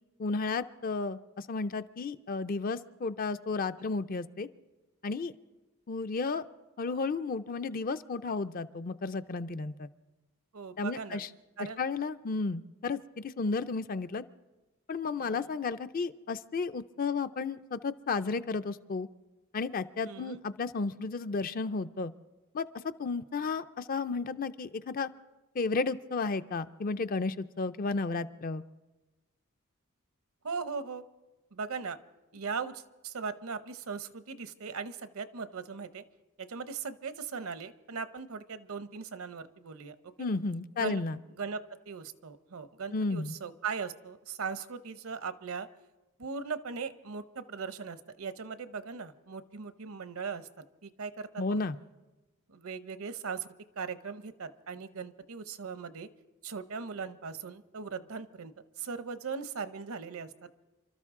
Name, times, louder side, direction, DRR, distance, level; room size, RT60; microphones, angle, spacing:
voice 1, 0.2-4.5 5.0-5.3 5.9-6.4 6.8-9.9 10.8-11.3 11.8-14.2 14.9-19.1 19.5-22.1 22.5-22.7 23.0-25.1 25.5-28.6 40.2-41.2 42.9-43.3 51.4-51.8, left 4 dB, 40° left, 12 dB, 0.4 m, -33 dB
voice 2, 10.5-11.2 11.6-11.8 15.2-15.5 20.0-20.4 30.4-31.0 31.5-32.0 32.3-36.0 36.4-40.1 40.8-41.0 41.3-45.7 46.2-50.5 50.8-51.6 52.5-53.5 53.8-56.1 56.4-60.3, right 5 dB, 70° right, 12 dB, 0.7 m, -39 dB
28.0 x 13.0 x 3.7 m, 1.1 s
head